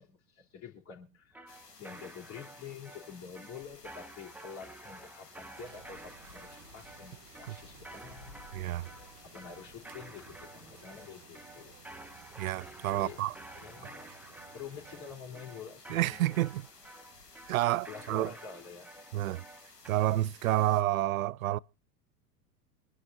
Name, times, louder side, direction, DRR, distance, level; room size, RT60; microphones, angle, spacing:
voice 1, 0.0-1.5 1.8-8.4 8.8-11.8 12.9-13.2 13.5-14.1 14.5-16.2 17.9-18.9, left 6 dB, 35° left, 4.2 m, -48 dB
sound 1, 1.3-19.9, right 2 dB, 5° right, 1.2 m, -51 dB
sound 2, 1.5-20.8, left 3 dB, 90° left, 1.8 m, -55 dB
Food store, 5.5-15.2, right 14 dB, 40° right, 1.2 m, -57 dB
voice 2, 8.5-8.9 12.4-13.3 15.9-16.6 17.5-18.3 19.1-19.4 19.9-21.6, right 15 dB, 60° right, 0.6 m, -29 dB
25.5 x 11.0 x 2.8 m
figure-of-eight pair, 90°, 46 cm